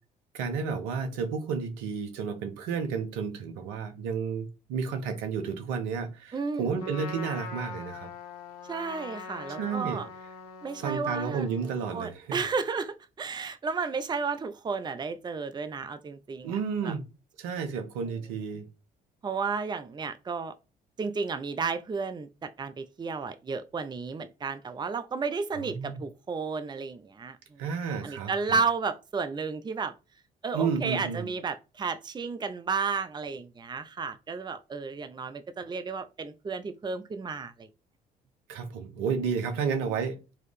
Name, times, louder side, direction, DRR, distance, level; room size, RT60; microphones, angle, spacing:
voice 1, 0.3-8.1 9.6-10.0 10.8-12.4 16.4-17.0 17.4-18.7 25.7-26.0 27.6-28.6 30.5-31.3 38.5-40.2, right 6 dB, 75° right, 1.0 m, -31 dB
voice 2, 6.3-6.7 8.7-10.1 10.6-11.5 11.9-16.9 19.2-20.5 21.0-27.6 28.0-29.9 30.4-37.7, right 4 dB, 20° right, 0.6 m, -32 dB
Trumpet, 6.8-12.0, left 4 dB, 85° left, 0.7 m, -43 dB
4.7 x 3.0 x 3.3 m
hypercardioid pair, 55°, 19 cm